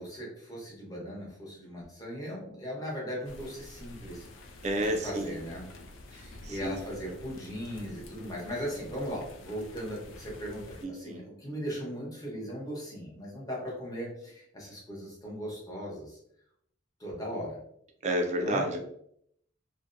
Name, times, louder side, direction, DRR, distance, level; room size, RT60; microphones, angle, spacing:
voice 1, 0.0-5.7 6.1-16.2 17.0-17.6 18.4-18.6, equal, 20° left, -4 dB, 0.9 m, -38 dB
sound 1, 3.2-10.9, left 2 dB, 90° left, 0.4 m, -49 dB
voice 2, 4.6-5.4 6.1-7.1 10.8-11.2 18.0-18.8, right 1 dB, 35° right, 4 dB, 0.4 m, -31 dB
2.7 x 2.1 x 2.5 m, 0.69 s
head